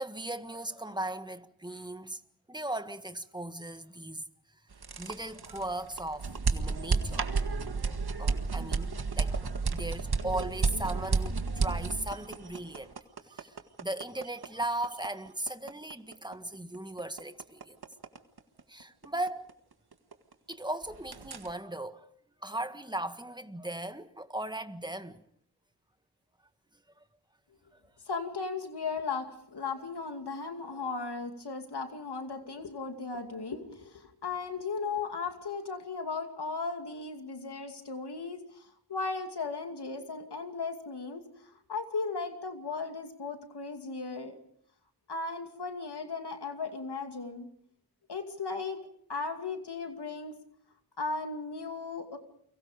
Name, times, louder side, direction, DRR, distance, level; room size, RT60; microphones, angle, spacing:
voice 1, 0.0-2.2 2.5-4.2 5.0-7.3 8.2-9.3 9.7-12.9 13.3-17.8 18.7-19.5 20.5-22.1 22.4-25.2 27.0-27.1 30.7-30.8, right 1 dB, 10° right, 1.7 m, -37 dB
sound 1, 4.7-20.5 20.8-21.5, right 4 dB, 70° right, 1.9 m, -32 dB
voice 2, 28.1-44.4 45.1-47.5 48.1-48.8 49.1-50.3 51.0-52.2, left 4 dB, 80° left, 2.5 m, -36 dB
30.0 x 24.0 x 5.1 m
wide cardioid pair, 55°, 39 cm